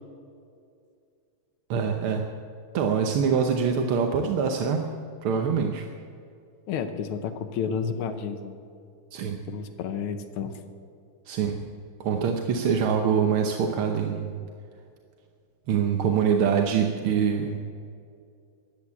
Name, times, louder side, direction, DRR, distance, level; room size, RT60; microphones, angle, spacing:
voice 1, 1.7-2.3 2.7-4.9 5.2-5.9 9.1-9.4 11.3-11.6 12.0-14.4 15.7-17.6, right 6 dB, 80° right, 4 dB, 1.8 m, -24 dB
voice 2, 6.7-8.5 9.5-10.6, left 6 dB, 90° left, 9 dB, 1.8 m, -31 dB
14.5 x 10.5 x 8.4 m, 2.4 s
omnidirectional pair, 2.3 m